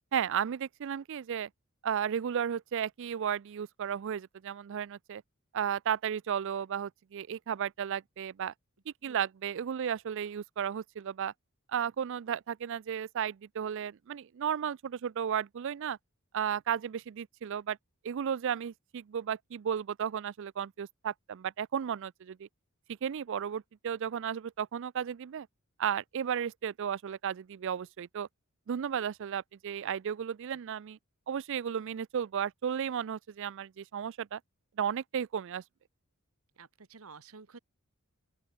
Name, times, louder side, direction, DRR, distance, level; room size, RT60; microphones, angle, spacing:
voice 1, 0.1-1.5 1.8-5.2 5.5-8.5 8.9-11.3 11.7-16.0 16.3-17.8 18.0-22.5 23.0-25.5 25.8-28.3 28.7-31.0 31.3-34.4 34.8-35.6, right 8 dB, 60° right, 0.4 m, -34 dB
voice 2, 36.6-37.6, right 4 dB, 75° right, 1.2 m, -51 dB
open air
head